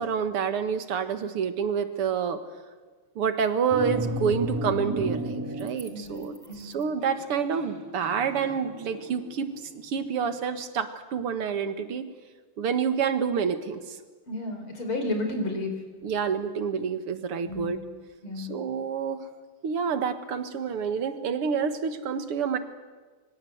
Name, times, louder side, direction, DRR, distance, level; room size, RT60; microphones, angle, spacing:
voice 1, 0.0-2.4 3.2-12.1 12.6-14.0 16.0-17.8 18.4-19.2 19.6-22.6, right 6 dB, 85° right, 10 dB, 2.5 m, -28 dB
sound 1, 3.7-5.9 6.2-9.6, equal, 10° right, 2.0 m, -33 dB
voice 2, 14.3-15.7 17.4-17.8 18.2-18.5, left 2 dB, 70° left, 5 dB, 5.6 m, -31 dB
26.0 x 23.5 x 7.9 m, 1.4 s
omnidirectional pair, 2.4 m